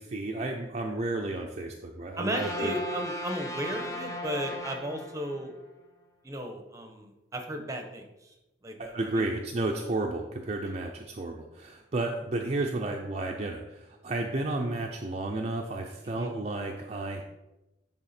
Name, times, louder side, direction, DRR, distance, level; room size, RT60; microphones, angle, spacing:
voice 1, 0.0-2.7 8.9-17.2, right 2 dB, 35° right, 2 dB, 0.5 m, -32 dB
voice 2, 2.2-5.6 6.2-8.3 8.6-9.3 16.0-16.3, right 1 dB, 20° right, 4 dB, 0.9 m, -35 dB
sound 1, 2.3-5.6, left 1 dB, 20° left, 0.7 m, -37 dB
10.5 x 3.6 x 4.2 m, 0.99 s
head